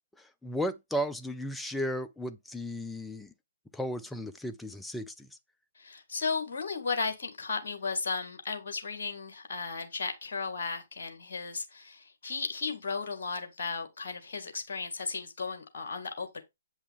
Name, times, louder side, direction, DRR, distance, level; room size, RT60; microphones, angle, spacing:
voice 1, 0.4-3.3 3.7-5.3, equal, 5° left, 0.5 m, -34 dB
voice 2, 5.8-16.4, left 4 dB, 55° left, 2.0 m, -35 dB
8.2 x 5.6 x 3.6 m
figure-of-eight pair, 130°, 0 cm